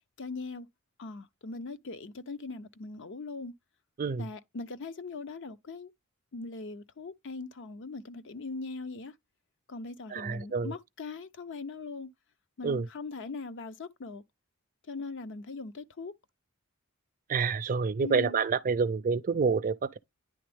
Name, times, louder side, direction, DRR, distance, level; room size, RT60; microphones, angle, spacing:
voice 1, 0.2-0.7 1.0-3.5 4.2-5.9 6.3-9.1 9.7-12.1 12.6-14.2 14.9-16.1 18.0-18.4, left 3 dB, 60° left, 0.6 m, -40 dB
voice 2, 10.1-10.7 12.6-12.9 17.3-20.0, right 5 dB, 40° right, 0.4 m, -28 dB
10.0 x 3.4 x 3.4 m
head